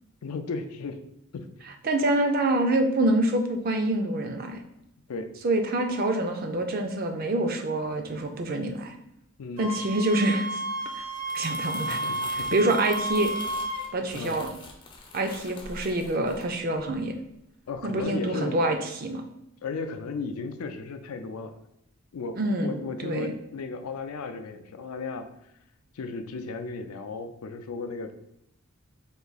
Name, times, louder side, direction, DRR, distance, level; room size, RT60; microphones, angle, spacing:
voice 1, 0.2-1.0 1.3-1.5 5.1-5.3 9.4-9.7 12.0-12.7 14.1-14.4 17.7-18.6 19.6-21.6 22.1-25.3 25.9-28.1, left 4 dB, 80° left, 8 dB, 0.4 m, -35 dB
voice 2, 1.8-4.6 5.4-8.9 9.6-10.6 10.9-11.1 11.3-12.0 12.5-13.3 13.9-14.5 15.1-17.1 17.8-19.2 22.3-23.3, right 1 dB, 40° right, 5 dB, 0.4 m, -26 dB
Wind instrument woodwind instrument, 9.6-13.9, right 1 dB, 85° right, 1.3 m, -31 dB
Crumpling crinkling, 11.0-17.4 17.7-18.0, left 3 dB, 20° left, 0.4 m, -45 dB
3.8 x 2.6 x 3.9 m, 0.82 s
head